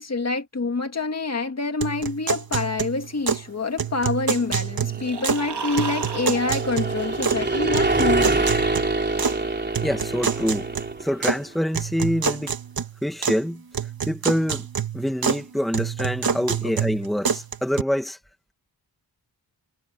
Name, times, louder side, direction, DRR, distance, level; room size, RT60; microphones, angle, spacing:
voice 1, 0.0-8.5, left 3 dB, 40° left, 2.1 m, -26 dB
sound 1, 1.8-3.5 3.8-5.5 5.8-7.5 7.7-9.4 9.7-11.4 11.7-13.4 13.7-15.4 15.7-17.8, right 6 dB, 60° right, 2.0 m, -27 dB
sound 2, 4.4-11.4, right 2 dB, 25° right, 3.7 m, -26 dB
sound 3, 4.8-7.9, right 5 dB, 75° right, 4.2 m, -35 dB
voice 2, 9.8-10.7 11.0-12.6 13.0-13.6 14.1-14.7 14.9-18.2, equal, ahead, 1.9 m, -25 dB
wide cardioid pair, 150°, 41 cm